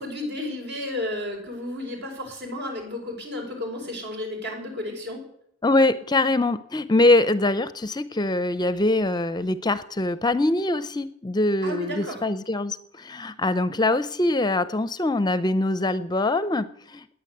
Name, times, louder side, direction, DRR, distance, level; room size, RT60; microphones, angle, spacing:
voice 1, 0.0-5.2 11.6-12.2, left 1 dB, 60° right, 2 dB, 6.1 m, -32 dB
voice 2, 5.6-17.1, left 2 dB, 20° left, 14 dB, 0.7 m, -23 dB
18.0 x 10.0 x 8.0 m, 0.70 s
head